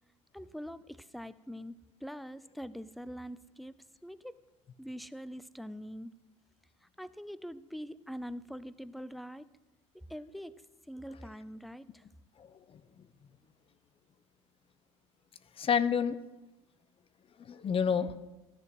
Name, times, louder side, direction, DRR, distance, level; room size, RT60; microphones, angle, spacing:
voice 1, 0.3-4.4 4.8-6.1 7.0-9.5 9.9-12.0, equal, ahead, 16 dB, 0.6 m, -44 dB
voice 2, 12.4-13.1 15.6-16.2 17.4-18.2, left 7 dB, 35° left, 13 dB, 0.9 m, -30 dB
14.5 x 11.0 x 6.1 m, 1.1 s
hypercardioid pair, 80°, 16 cm